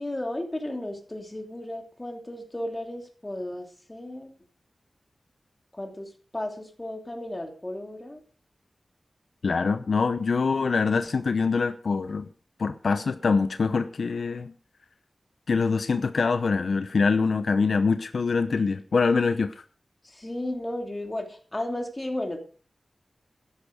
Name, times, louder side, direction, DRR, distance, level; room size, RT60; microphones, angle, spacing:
voice 1, 0.0-4.3 5.7-8.2 20.0-22.4, left 1 dB, 25° left, 4 dB, 2.9 m, -34 dB
voice 2, 9.4-12.3 12.6-14.5 15.5-19.5, left 4 dB, 80° left, 10 dB, 0.8 m, -24 dB
13.0 x 11.0 x 5.2 m, 0.40 s
wide cardioid pair, 85°, 0 cm